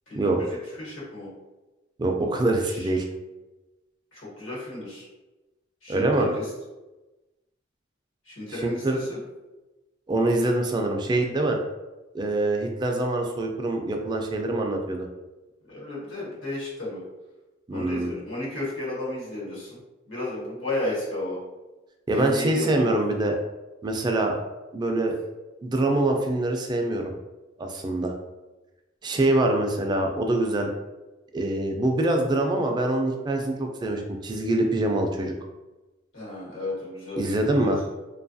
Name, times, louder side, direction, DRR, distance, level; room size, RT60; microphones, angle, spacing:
voice 1, 0.1-1.3 2.6-2.9 4.1-5.1 5.8-6.5 8.3-9.2 15.7-17.0 17.7-19.8 20.1-21.4 22.1-22.9 36.1-37.8, left 2 dB, 90° left, -6 dB, 1.2 m, -33 dB
voice 2, 2.0-3.1 5.9-6.3 8.5-9.0 10.1-11.6 12.1-15.1 17.7-18.1 22.1-23.3 23.8-24.4 24.7-25.2 25.6-27.1 27.6-28.1 29.0-30.7 31.3-35.3 37.2-37.8, right 2 dB, 25° right, 3 dB, 0.3 m, -24 dB
2.6 x 2.3 x 2.6 m, 1.1 s
head